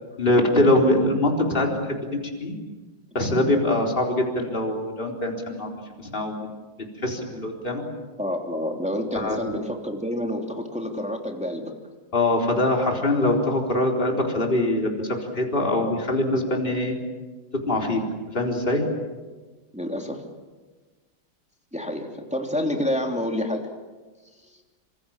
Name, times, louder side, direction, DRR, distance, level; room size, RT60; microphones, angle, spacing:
voice 1, 0.2-1.8 2.4-2.5 3.1-5.7 6.0-6.4 7.0-7.8 9.1-9.6 12.1-14.9 15.3-17.0 17.7-18.0 18.3-18.8, left 1 dB, 25° left, 1 dB, 4.2 m, -23 dB
voice 2, 8.2-11.7 19.7-20.2 21.7-23.7, left 1 dB, 5° right, 2 dB, 3.2 m, -28 dB
27.5 x 26.5 x 7.4 m, 1.3 s
omnidirectional pair, 2.1 m